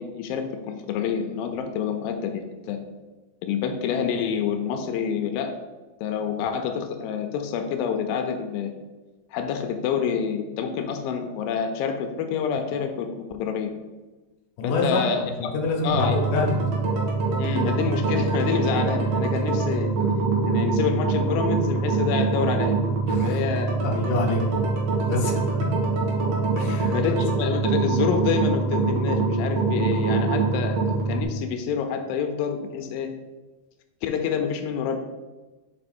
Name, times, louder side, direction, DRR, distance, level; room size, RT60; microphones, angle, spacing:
voice 1, 0.0-2.8 3.4-5.5 6.0-8.7 9.3-13.7 14.6-15.6 15.8-16.2 17.4-19.9 20.5-22.8 23.2-23.9 26.7-33.1 34.0-35.0, left 7 dB, 90° left, 5 dB, 2.4 m, -27 dB
voice 2, 14.6-15.0 15.4-16.5 23.1-23.4 23.8-24.4 25.1-25.4 26.6-27.0, left 3 dB, 70° left, 0 dB, 2.5 m, -26 dB
sound 1, 15.9-31.2, right 4 dB, 60° right, 2.1 m, -24 dB
5.4 x 4.9 x 4.3 m, 1.2 s
omnidirectional pair, 4.0 m